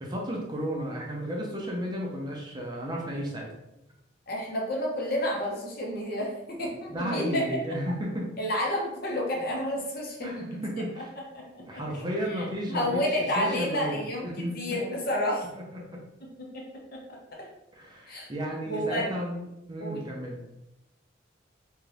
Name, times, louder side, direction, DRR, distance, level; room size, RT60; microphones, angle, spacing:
voice 1, 0.0-3.5 6.9-8.3 10.2-11.1 11.7-13.0 13.3-14.6 15.5-16.0 17.7-20.4, equal, 25° right, -2 dB, 0.5 m, -33 dB
voice 2, 4.3-7.5 8.4-10.6 11.3-15.5 16.5-16.6 16.9-17.2 18.1-18.3 18.7-19.1 19.8-20.0, equal, 50° left, -2 dB, 0.8 m, -30 dB
2.7 x 2.4 x 3.3 m, 0.87 s
head